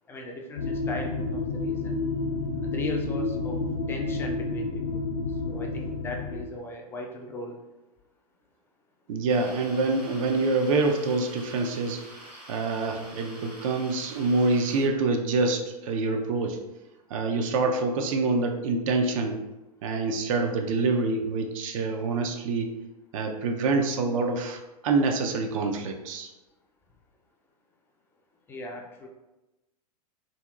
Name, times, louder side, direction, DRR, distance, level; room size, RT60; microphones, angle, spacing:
voice 1, 0.1-2.0 2.6-3.6 3.9-5.1 5.4-7.6 28.5-29.1, left 2 dB, 10° left, 1 dB, 0.3 m, -38 dB
sound 1, 0.6-6.5, left 3 dB, 80° left, 0.5 m, -30 dB
voice 2, 9.1-12.0 12.5-16.6 17.1-19.4 19.8-22.7 23.1-26.3, right 3 dB, 55° right, 4 dB, 0.5 m, -26 dB
sound 2, 9.3-14.9, right 1 dB, 80° right, 1.4 m, -46 dB
2.8 x 2.7 x 2.3 m, 1.0 s
figure-of-eight pair, 105°, 20 cm